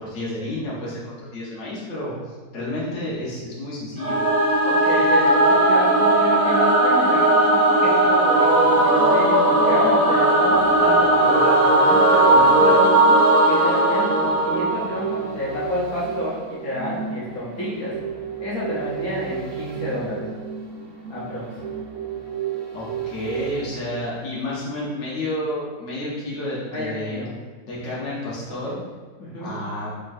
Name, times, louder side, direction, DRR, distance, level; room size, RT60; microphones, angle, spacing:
voice 1, 0.0-4.2 22.7-27.2 27.7-28.8 29.4-29.9, left 1 dB, 50° left, -7 dB, 1.3 m, -30 dB
Singing / Musical instrument, 4.0-15.3, right 1 dB, 30° right, 0.8 m, -17 dB
voice 2, 4.6-13.1 13.4-18.0 18.4-20.3 21.1-21.5 26.7-27.3 29.2-29.6, left 1 dB, 65° left, -7 dB, 1.5 m, -29 dB
sound 1, 8.6-24.9 25.2-25.3, right 7 dB, 70° right, 1.4 m, -34 dB
4.3 x 3.8 x 2.6 m, 1.4 s
omnidirectional pair, 1.6 m